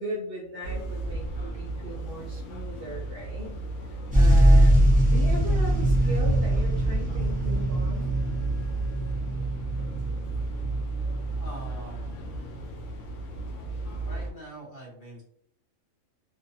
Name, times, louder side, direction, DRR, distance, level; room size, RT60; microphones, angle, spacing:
voice 1, 0.0-3.5 3.9-4.8 5.1-8.1, right 1 dB, 65° right, -2 dB, 0.6 m, -37 dB
sound 1, 0.6-14.3, right 3 dB, 75° left, 0.9 m, -33 dB
sound 2, 4.1-11.6 12.3-12.4, right 1 dB, 10° right, 0.5 m, -22 dB
voice 2, 11.4-12.7 14.0-15.2, right 1 dB, 50° left, -4 dB, 0.7 m, -44 dB
2.5 x 2.0 x 2.6 m, 0.69 s
omnidirectional pair, 1.3 m